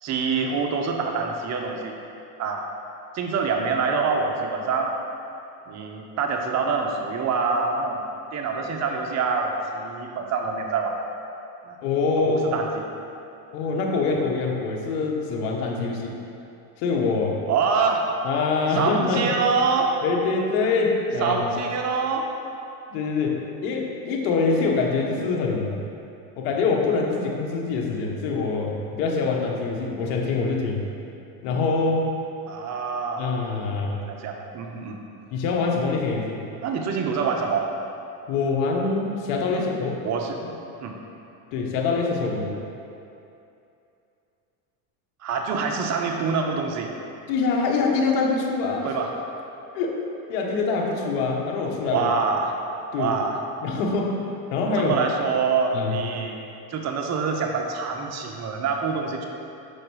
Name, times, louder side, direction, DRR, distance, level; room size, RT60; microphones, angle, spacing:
voice 1, 0.0-2.0 2.4-2.6 3.1-4.9 5.7-8.0 8.3-10.9 11.7-11.8 12.2-12.8 17.5-18.2 18.8-20.0 21.2-22.3 32.5-33.3 33.9-35.0 36.6-37.7 39.5-39.7 40.0-40.4 40.8-41.0 45.2-46.9 48.8-49.1 51.9-52.5 53.0-53.4 54.8-56.4 56.7-59.3, right 5 dB, 35° right, 2 dB, 0.8 m, -25 dB
voice 2, 11.8-12.5 13.5-16.1 16.8-17.4 18.2-19.3 20.0-21.5 22.9-25.8 26.4-30.8 31.4-32.1 33.2-34.0 35.3-36.4 38.3-40.0 41.5-42.5 47.3-48.9 49.7-50.0 50.3-52.1 52.9-53.1 53.6-55.0 55.7-56.0, left 4 dB, 70° left, 0 dB, 1.3 m, -24 dB
6.5 x 4.8 x 4.7 m, 2.7 s
supercardioid pair, 105°, 48 cm